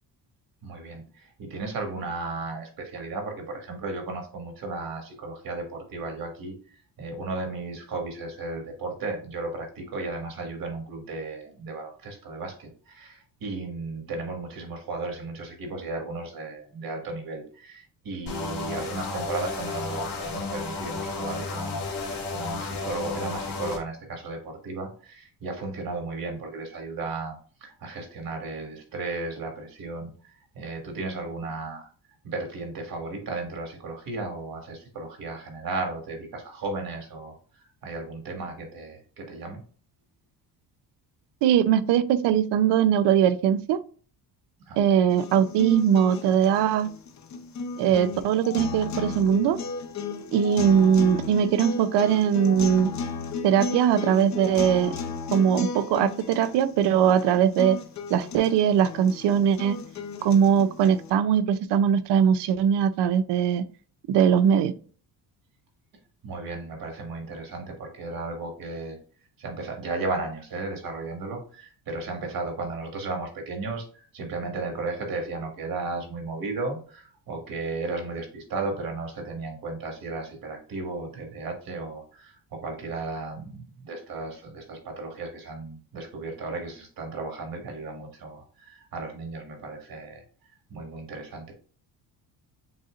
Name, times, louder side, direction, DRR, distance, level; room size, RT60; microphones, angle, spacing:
voice 1, 0.6-6.6 7.0-31.9 32.2-39.6 44.7-45.1 47.9-48.1 66.2-69.0 69.4-90.2 90.7-91.5, right 3 dB, 55° right, 4 dB, 1.7 m, -35 dB
sound 1, 18.3-23.8, left 3 dB, 70° left, 1.9 m, -32 dB
voice 2, 41.4-43.8 44.8-46.9 47.8-49.6 50.3-52.9 53.4-54.9 55.3-57.8 58.1-59.8 60.2-63.6 64.1-64.7, right 8 dB, 80° right, 13 dB, 0.6 m, -21 dB
sound 2, 45.1-61.1, left 5 dB, 45° left, 0.8 m, -35 dB
7.7 x 2.9 x 2.4 m, 0.41 s
cardioid pair, 135°, 41 cm